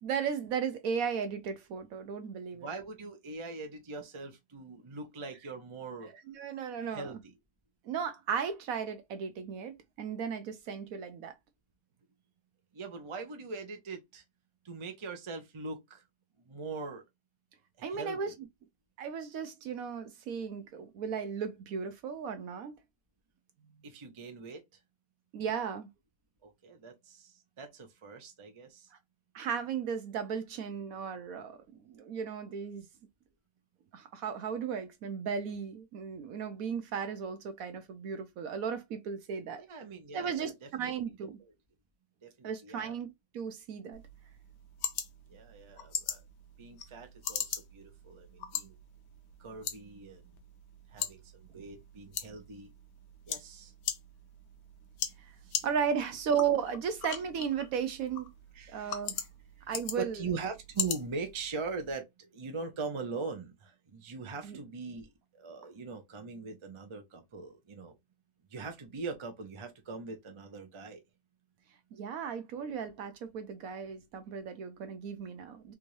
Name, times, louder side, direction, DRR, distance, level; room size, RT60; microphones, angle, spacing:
voice 1, 0.0-2.7 6.0-7.2 7.8-11.3 17.8-18.3 19.0-22.8 25.3-25.9 29.3-32.8 33.9-39.6 40.1-41.4 42.4-44.0 55.2-55.3 55.6-58.3 58.7-59.2 59.7-60.2 64.4-64.6 71.9-75.7, right 7 dB, 70° right, 1.0 m, -35 dB
voice 2, 2.6-6.1 6.8-7.3 12.7-14.2 14.6-16.0 16.5-17.0 17.8-18.2 23.8-24.6 26.4-28.9 39.6-40.9 42.2-42.9 45.3-46.2 46.6-48.8 49.4-50.2 50.9-52.7 53.3-53.7 55.4-55.7 58.5-59.0 60.0-67.9 68.5-71.0, right 4 dB, 35° right, 0.5 m, -41 dB
sound 1, 43.9-61.9, left 8 dB, 75° left, 1.2 m, -41 dB
3.5 x 2.6 x 3.1 m
omnidirectional pair, 1.7 m